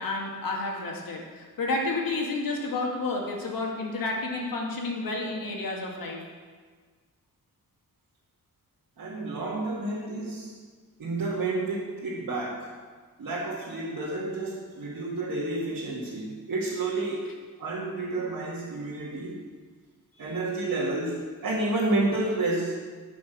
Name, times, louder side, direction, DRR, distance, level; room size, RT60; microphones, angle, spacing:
voice 1, 0.0-6.2, left 3 dB, 90° left, -1 dB, 2.2 m, -30 dB
voice 2, 9.0-10.5 11.0-12.7 13.2-17.3 17.6-19.4 20.2-22.7, right 2 dB, 70° right, -7 dB, 2.0 m, -30 dB
12.5 x 6.1 x 6.3 m, 1.5 s
wide cardioid pair, 150°, 34 cm